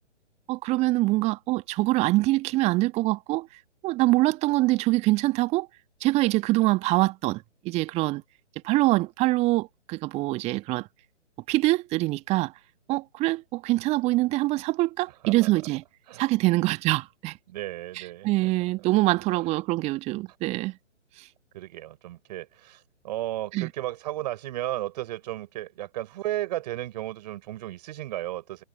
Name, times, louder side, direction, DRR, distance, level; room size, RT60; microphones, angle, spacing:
voice 1, 0.5-3.5 3.8-5.7 6.0-8.2 8.6-10.9 11.5-12.5 12.9-15.8 16.2-17.4 18.0-20.8 21.2-21.3 23.5-23.7, right 19 dB, 15° right, 1.8 m, -24 dB
voice 2, 17.5-18.5 21.5-28.6, right 15 dB, 35° right, 5.4 m, -34 dB
figure-of-eight pair, 130°, 37 cm